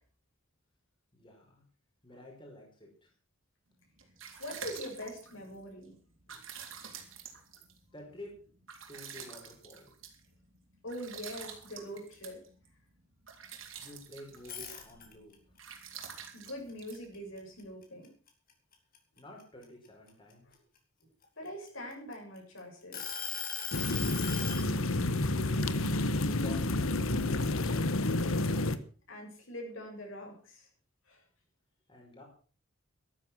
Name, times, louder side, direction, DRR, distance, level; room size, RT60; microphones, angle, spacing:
voice 1, 1.1-1.6 2.0-3.1 7.9-8.3 8.9-9.9 13.8-15.3 19.2-20.5 26.2-28.6 31.9-32.2, left 1 dB, 25° left, -1 dB, 5.2 m, -51 dB
sound 1, 3.8-17.7, right 7 dB, 70° right, 3.8 m, -49 dB
voice 2, 4.4-6.0 6.3-6.4 6.8-6.9 7.3-7.4 10.8-12.4 16.3-18.1 20.5-20.6 21.4-23.1 29.1-30.7 31.1-31.2, equal, 70° left, 0 dB, 7.6 m, -43 dB
sound 2, 14.4-15.3 15.8-17.6 18.0-18.3 18.7-20.5 21.2-22.4 22.9-24.7, left 7 dB, 45° left, 4.2 m, -38 dB
sound 3, 23.7-28.8, left 2 dB, 90° left, 1.3 m, -30 dB
14.0 x 13.0 x 6.2 m, 0.40 s
head